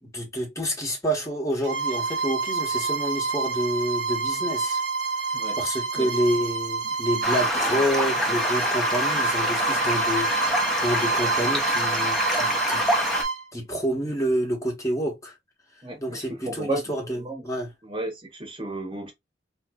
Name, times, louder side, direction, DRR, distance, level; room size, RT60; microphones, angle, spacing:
voice 1, 0.0-4.8 5.6-10.5 10.8-12.8 13.5-15.3 16.0-17.7, equal, 15° left, 1.1 m, -28 dB
Bowed string instrument, 1.6-13.4, right 4 dB, 80° right, 1.1 m, -28 dB
Stream, 7.2-13.2, left 1 dB, ahead, 0.8 m, -26 dB
voice 2, 15.8-16.8 17.2-17.4 17.8-19.1, right 2 dB, 30° right, 1.2 m, -33 dB
4.0 x 2.7 x 2.3 m
head